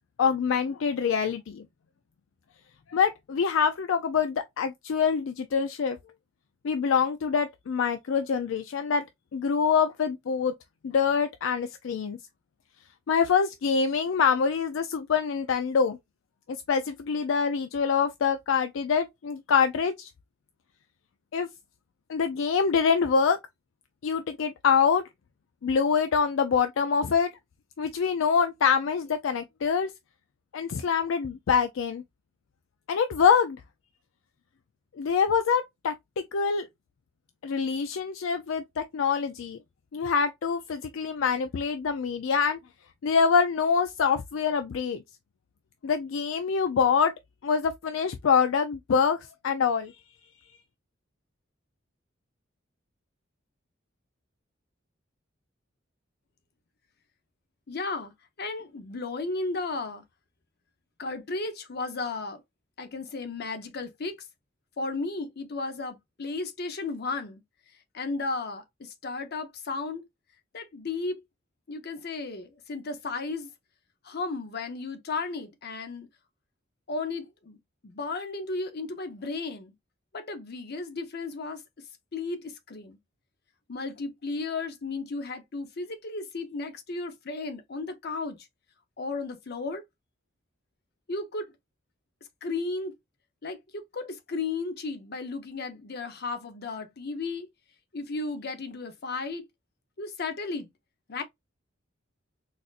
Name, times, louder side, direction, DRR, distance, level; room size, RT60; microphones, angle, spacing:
voice 1, 0.2-1.6 2.9-6.0 6.6-9.0 9.3-10.5 10.8-12.2 13.1-16.0 16.7-20.1 21.3-21.5 22.1-23.4 24.0-25.0 25.6-27.3 27.8-29.9 30.5-32.0 32.9-33.6 35.0-36.7 37.4-39.6 39.9-42.6 43.0-45.0 45.8-47.1 47.4-49.2 49.4-49.9, left 6 dB, 80° left, 0.4 m, -25 dB
voice 2, 57.7-58.1 58.4-60.0 61.0-62.4 62.8-64.2 64.8-67.4 67.9-70.1 70.5-71.2 71.7-73.5 74.0-76.1 76.9-77.6 77.8-79.7 80.1-81.6 82.1-83.0 83.7-88.4 89.0-89.8 91.1-91.5 92.4-92.9 93.4-97.5 97.9-99.4 100.0-100.7 101.1-101.2, left 3 dB, 55° left, 0.7 m, -34 dB
4.1 x 2.5 x 2.4 m
head